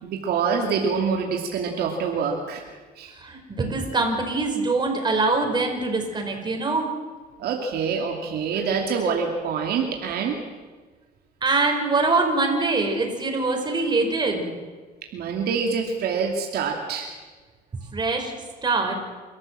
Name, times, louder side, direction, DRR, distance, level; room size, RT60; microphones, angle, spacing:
voice 1, 0.0-2.6 3.0-3.1 7.4-10.4 15.1-17.1, right 5 dB, 70° right, 2 dB, 2.7 m, -26 dB
voice 2, 3.1-6.9 11.4-14.5 17.9-18.3 18.6-19.0, right 3 dB, 25° right, 2 dB, 5.2 m, -23 dB
29.0 x 14.0 x 7.6 m, 1.4 s
cardioid pair, 110°, 17 cm